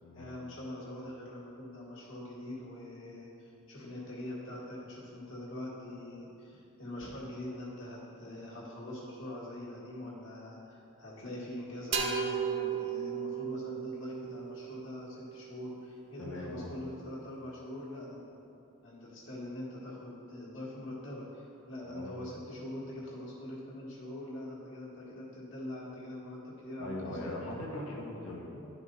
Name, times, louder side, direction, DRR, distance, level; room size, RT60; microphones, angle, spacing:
voice 1, 0.1-18.2 18.8-27.3 28.5-28.7, left 1 dB, 65° left, -6 dB, 1.9 m, -43 dB
sound 1, 11.9-15.6, right 6 dB, 50° right, 0.7 m, -35 dB
voice 2, 16.2-16.7 21.8-22.1 26.8-28.7, left 1 dB, 80° left, -3 dB, 1.5 m, -40 dB
11.0 x 5.0 x 4.0 m, 2.7 s
head